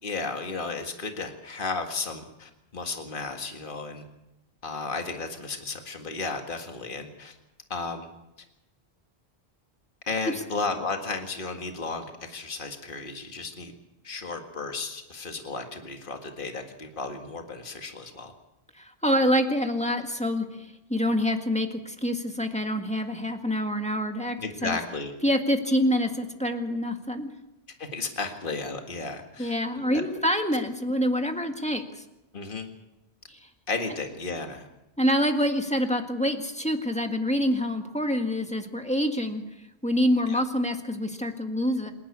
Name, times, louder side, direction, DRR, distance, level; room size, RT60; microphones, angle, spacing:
voice 1, 0.0-4.0 4.6-7.4 7.7-8.1 10.1-13.7 14.0-18.3 24.4-25.1 27.8-30.0 32.3-32.7 33.7-34.7 40.2-40.4, left 3 dB, 50° left, 4 dB, 2.1 m, -34 dB
voice 2, 18.7-24.8 25.2-27.3 29.4-32.0 33.3-33.4 35.0-39.4 39.8-41.9, equal, 5° left, 5 dB, 1.8 m, -26 dB
27.0 x 11.5 x 8.5 m, 0.94 s
omnidirectional pair, 1.1 m